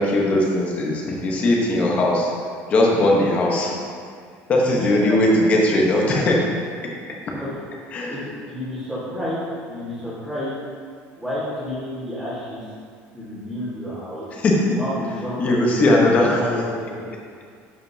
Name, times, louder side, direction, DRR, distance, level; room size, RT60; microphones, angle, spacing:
voice 1, 0.0-2.3 2.7-3.7 4.5-6.4 7.9-8.2 14.4-14.8 15.4-16.4, left 1 dB, 25° left, -1 dB, 1.1 m, -19 dB
voice 2, 4.8-5.2 7.4-7.5 8.1-8.2 8.5-10.5 11.2-12.7 13.1-14.3 14.7-17.0, left 1 dB, ahead, -14 dB, 1.6 m, -30 dB
11.0 x 5.2 x 2.8 m, 2.1 s
cardioid pair, 180°, 5 cm